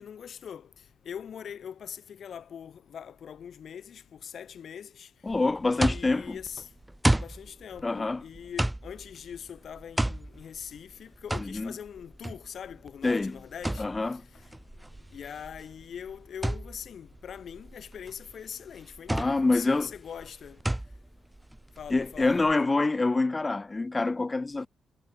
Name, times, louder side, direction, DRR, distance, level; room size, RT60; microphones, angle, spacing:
voice 1, 0.0-5.1 5.7-6.7 7.1-14.5 14.8-20.6 21.8-22.4, left 8 dB, 65° left, 6.0 m, -42 dB
voice 2, 5.2-6.4 7.8-8.2 11.4-11.7 13.0-13.4 13.8-14.2 19.1-19.9 21.9-24.7, left 3 dB, 25° left, 1.6 m, -26 dB
sound 1, 5.3-22.5, right 1 dB, 10° right, 0.9 m, -33 dB
cardioid pair, 65°, 0 cm